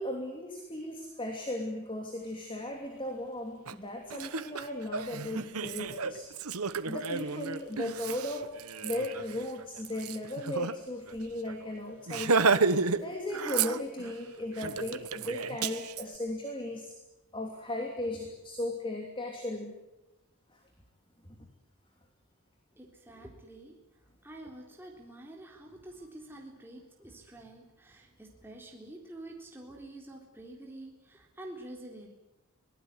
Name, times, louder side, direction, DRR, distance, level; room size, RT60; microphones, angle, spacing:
voice 1, 0.0-6.3 6.8-8.5 8.8-12.6 13.0-16.9 17.3-19.7 21.2-21.4, left 1 dB, 20° left, 3 dB, 2.9 m, -36 dB
Laughter, 3.7-3.8 4.1-10.7 11.1-11.2 11.5-11.7 12.1-13.0 13.3-14.1 14.6-16.0, right 4 dB, 80° right, 1.2 m, -31 dB
voice 2, 22.8-23.8 24.2-32.1, right 1 dB, 10° right, 0 dB, 3.7 m, -48 dB
24.5 x 19.0 x 9.8 m, 0.97 s
head